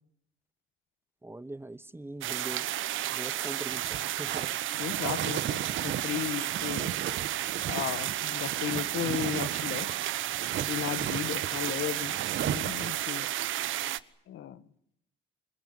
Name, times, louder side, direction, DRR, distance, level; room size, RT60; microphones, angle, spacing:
voice 1, 1.2-2.7 3.1-4.5, right 2 dB, 10° right, 0.9 m, -42 dB
sound 1, 2.2-14.0, right 13 dB, 80° right, 1.1 m, -32 dB
sound 2, 3.7-10.0 10.3-13.0, right 9 dB, 65° right, 1.3 m, -36 dB
voice 2, 4.8-6.9 7.7-9.9 10.7-12.1 12.5-13.3 14.3-14.6, left 12 dB, 80° left, 1.6 m, -35 dB
25.5 x 20.5 x 9.2 m
cardioid pair, 90°, 20 cm